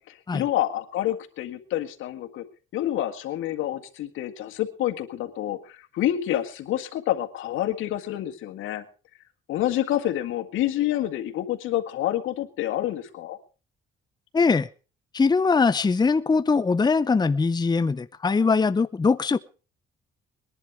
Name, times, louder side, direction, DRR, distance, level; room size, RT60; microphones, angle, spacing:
voice 1, 0.0-2.4 2.7-8.8 9.5-13.4, left 12 dB, 85° left, 1.8 m, -28 dB
voice 2, 14.3-14.7 15.1-19.4, left 4 dB, 20° left, 0.7 m, -21 dB
21.0 x 11.0 x 4.8 m
cardioid pair, 90°, 20 cm